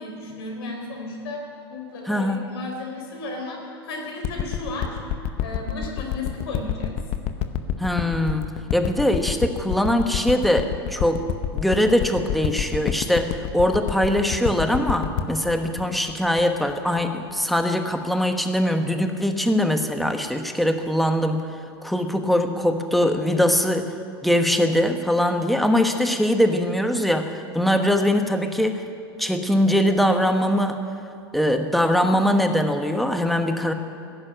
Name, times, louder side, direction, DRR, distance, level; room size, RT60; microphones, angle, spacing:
voice 1, 0.0-5.0 5.4-6.9, left 2 dB, 70° left, 1 dB, 4.1 m, -34 dB
voice 2, 2.1-2.4 7.8-11.2 11.5-21.4 21.8-23.9 24.2-28.8 29.2-30.8 31.3-33.7, equal, ahead, 5 dB, 1.1 m, -22 dB
sound 1, 4.2-17.0 17.6-17.7, left 9 dB, 50° left, 0.9 m, -28 dB
16.5 x 6.8 x 9.1 m, 2.4 s
hypercardioid pair, 105°, 13 cm